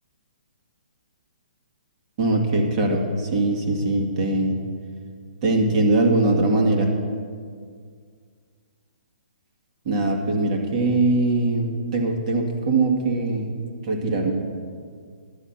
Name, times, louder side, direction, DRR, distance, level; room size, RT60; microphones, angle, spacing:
voice 1, 2.2-4.5 5.4-6.9 9.9-13.5 13.8-14.3, right 2 dB, 45° right, 1 dB, 2.1 m, -21 dB
11.5 x 9.2 x 5.9 m, 2.1 s
hypercardioid pair, 135°, 5 cm